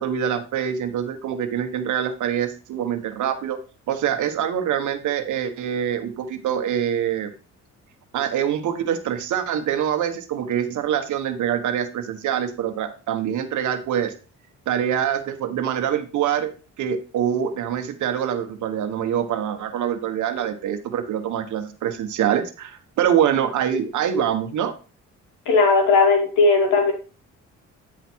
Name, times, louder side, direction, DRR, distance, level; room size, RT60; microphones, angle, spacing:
voice 1, 0.0-3.6 3.9-7.3 8.1-14.1 14.7-16.5 16.8-24.7, right 9 dB, 75° right, 8 dB, 1.3 m, -25 dB
voice 2, 25.5-26.9, left 3 dB, 90° left, 2 dB, 2.6 m, -17 dB
9.6 x 5.0 x 4.5 m, 0.34 s
cardioid pair, 90°, 30 cm